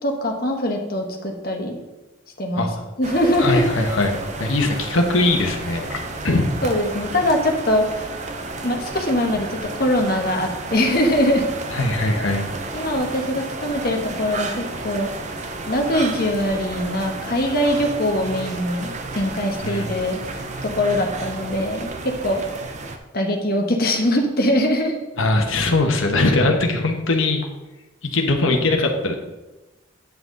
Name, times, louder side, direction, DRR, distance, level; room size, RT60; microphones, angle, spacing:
voice 1, 0.0-1.8 2.4-2.7 3.0-3.6 6.6-8.1 8.6-11.5 12.7-15.1 15.7-20.2 20.6-22.4 23.1-24.9, left 1 dB, 45° left, 2 dB, 1.2 m, -22 dB
sound 1, 3.0-23.0, right 2 dB, 35° right, 0.7 m, -32 dB
voice 2, 3.4-6.0 6.2-6.6 11.7-12.4 19.6-19.9 25.2-27.4 28.1-29.1, left 2 dB, 75° left, 3 dB, 1.2 m, -20 dB
9.4 x 5.9 x 3.9 m, 1.1 s
head